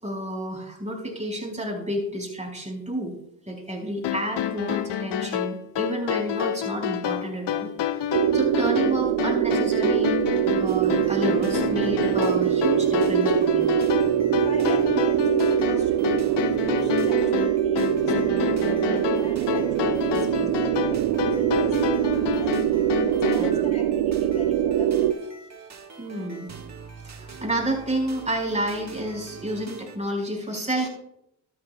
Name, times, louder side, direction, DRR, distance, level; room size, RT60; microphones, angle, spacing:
voice 1, 0.0-3.1 3.5-10.2 10.6-13.7 20.1-20.5 23.3-23.6 26.0-26.5 27.0-30.9, right 1 dB, 15° right, 0 dB, 4.6 m, -30 dB
sound 1, 4.0-23.5, left 10 dB, 60° left, 0.8 m, -28 dB
sound 2, 8.1-25.1, right 11 dB, 80° right, 0.6 m, -23 dB
sound 3, 10.7-30.0, right 4 dB, 35° right, 1.5 m, -43 dB
voice 2, 14.4-22.6 23.1-25.3 25.6-25.7 27.0-27.1, left 1 dB, 15° left, 4 dB, 2.8 m, -41 dB
13.0 x 13.0 x 2.2 m, 0.79 s
supercardioid pair, 55°, 49 cm